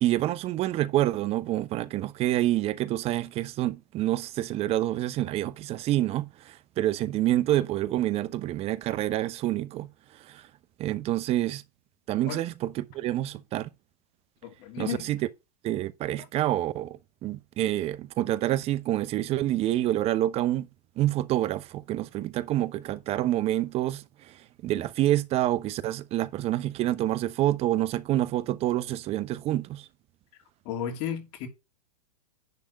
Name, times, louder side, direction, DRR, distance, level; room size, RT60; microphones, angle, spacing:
voice 1, 0.0-9.9 10.2-10.5 10.8-11.6 12.1-13.7 14.8-15.2 15.6-20.7 21.0-29.9, right 14 dB, 30° right, 0.7 m, -27 dB
voice 2, 14.4-15.1 30.6-31.5, left 9 dB, 45° left, 2.7 m, -33 dB
10.5 x 3.6 x 6.3 m
hypercardioid pair, 110°, 20 cm